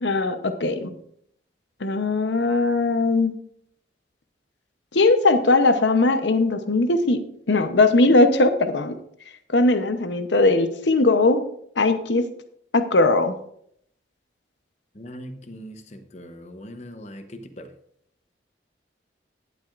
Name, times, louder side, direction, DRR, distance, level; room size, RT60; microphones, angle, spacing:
voice 1, 0.0-0.9 1.8-3.3 4.9-7.2 7.5-8.9 9.5-11.4 11.8-12.2 12.7-13.3, left 2 dB, 75° left, 9 dB, 0.9 m, -19 dB
voice 2, 14.9-17.7, equal, 40° left, 9 dB, 0.8 m, -40 dB
17.5 x 7.7 x 2.5 m, 0.68 s
head